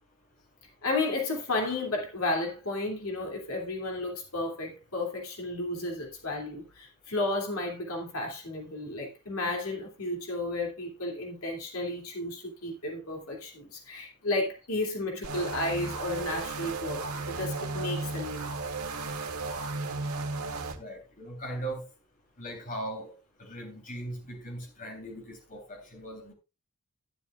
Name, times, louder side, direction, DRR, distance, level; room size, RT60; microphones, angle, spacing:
voice 1, 0.8-18.5, left 2 dB, 70° left, 2.7 m, -33 dB
sound 1, 15.2-20.8, right 3 dB, 85° right, 1.6 m, -34 dB
voice 2, 20.7-21.9 22.4-23.1 23.4-26.3, right 1 dB, 40° left, 3.4 m, -39 dB
11.5 x 11.0 x 2.4 m
head